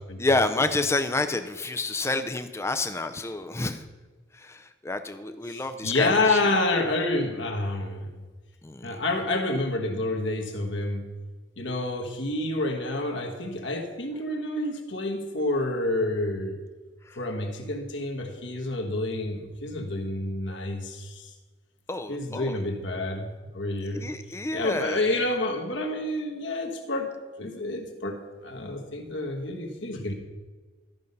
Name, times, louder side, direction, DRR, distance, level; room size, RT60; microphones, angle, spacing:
voice 1, 0.2-3.8 4.3-6.6 8.6-9.0 17.0-17.2 21.9-22.6 23.9-25.0, left 2 dB, 15° left, 9 dB, 0.4 m, -29 dB
voice 2, 5.5-8.2 8.8-11.1 11.6-16.6 17.2-21.3 22.1-24.1 24.5-30.1, left 2 dB, 65° left, 3 dB, 1.3 m, -29 dB
12.5 x 5.3 x 5.4 m, 1.3 s
head